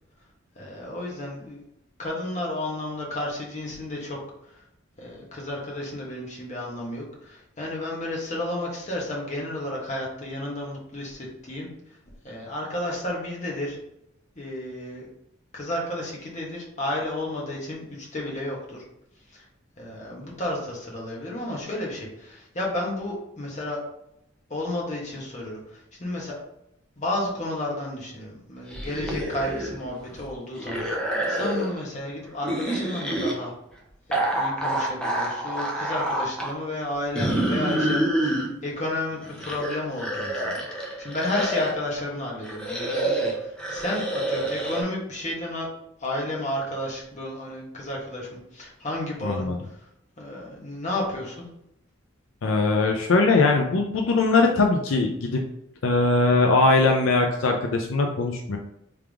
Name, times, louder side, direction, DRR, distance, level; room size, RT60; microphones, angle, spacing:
voice 1, 0.5-1.6 2.0-4.5 5.0-11.7 12.2-13.8 14.3-15.1 15.5-18.8 19.3-19.4 19.8-23.8 24.5-26.4 27.0-33.5 34.1-45.7 46.0-49.5 50.2-51.5, left 1 dB, 40° left, -3 dB, 1.3 m, -32 dB
sound 1, 28.7-29.8 30.1-31.8 32.4-33.3 34.1-36.5 37.2-38.5 39.1-41.8 42.4-44.8, right 1 dB, 5° left, 0.7 m, -27 dB
voice 2, 49.2-49.6 52.4-55.4 55.8-58.6, left 3 dB, 80° left, 2 dB, 0.5 m, -21 dB
3.5 x 3.4 x 3.5 m, 0.79 s
head